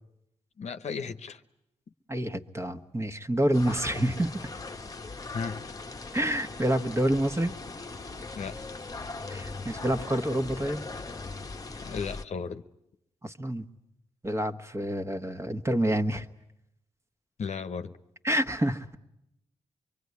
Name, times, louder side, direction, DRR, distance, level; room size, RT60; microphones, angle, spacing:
voice 1, 0.6-1.4 5.3-5.6 8.3-8.6 11.8-12.6 17.4-18.0, left 5 dB, 65° left, 0.9 m, -35 dB
voice 2, 2.1-4.4 6.1-7.5 9.3-10.8 13.2-13.6 14.2-16.2 18.2-18.9, right 1 dB, 20° right, 1.4 m, -28 dB
sound 1, 3.5-12.3, left 3 dB, 30° left, 1.0 m, -40 dB
24.5 x 23.5 x 9.6 m
cardioid pair, 60°, 12 cm